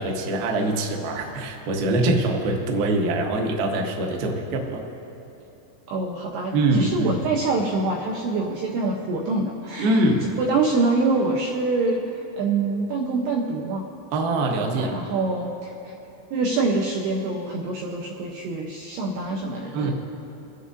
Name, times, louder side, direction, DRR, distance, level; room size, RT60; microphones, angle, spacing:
voice 1, 0.0-4.8 6.5-7.2 9.8-10.3 14.1-15.0 19.7-19.9, right 2 dB, 70° right, 1 dB, 2.4 m, -23 dB
voice 2, 5.9-12.0 12.4-13.8 14.8-15.9 16.3-19.9, right 3 dB, 90° right, -1 dB, 2.3 m, -25 dB
28.5 x 9.9 x 2.6 m, 3.0 s
omnidirectional pair, 5.7 m